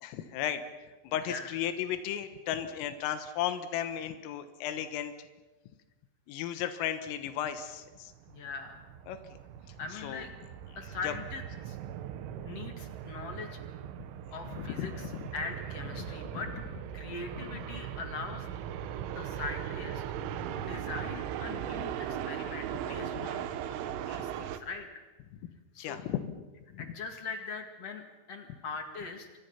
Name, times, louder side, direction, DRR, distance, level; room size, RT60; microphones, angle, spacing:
voice 1, 0.0-0.6 1.1-5.1 6.3-8.1 9.1-9.2 10.0-10.2 11.0-11.1 14.6-14.9 15.1-15.2 16.0-16.1 23.2-23.3 25.8-26.5 26.7-26.9, left 10 dB, 90° left, 10 dB, 3.9 m, -34 dB
sound 1, 7.5-24.6, right 10 dB, 80° right, 3.6 m, -39 dB
voice 2, 8.3-8.9 9.8-10.3 10.8-11.8 12.4-13.6 14.3-16.5 16.9-18.6 19.1-20.0 20.3-25.0 25.7-26.0 26.8-29.3, left 4 dB, 45° left, 5 dB, 2.2 m, -41 dB
29.0 x 25.0 x 5.8 m, 1.2 s
omnidirectional pair, 5.7 m